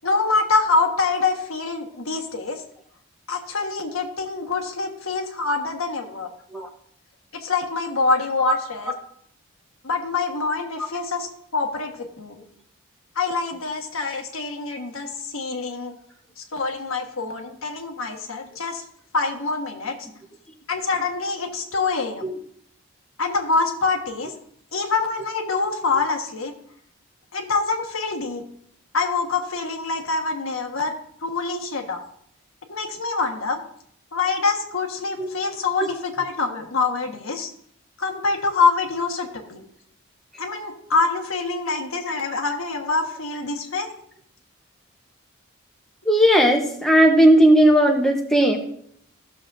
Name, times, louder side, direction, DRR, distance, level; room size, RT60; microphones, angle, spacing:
voice 1, 0.0-2.6 3.3-6.3 7.3-8.9 9.8-11.3 11.5-12.4 13.1-16.0 16.4-18.8 19.1-20.0 20.7-22.2 23.2-24.3 24.7-26.5 27.3-28.4 28.9-30.9 31.2-32.0 32.7-33.6 34.1-37.5 38.0-39.6 40.4-43.9, left 4 dB, 75° left, 3 dB, 1.4 m, -25 dB
voice 2, 46.1-48.6, equal, ahead, 1 dB, 0.9 m, -16 dB
15.5 x 6.8 x 2.6 m, 0.67 s
head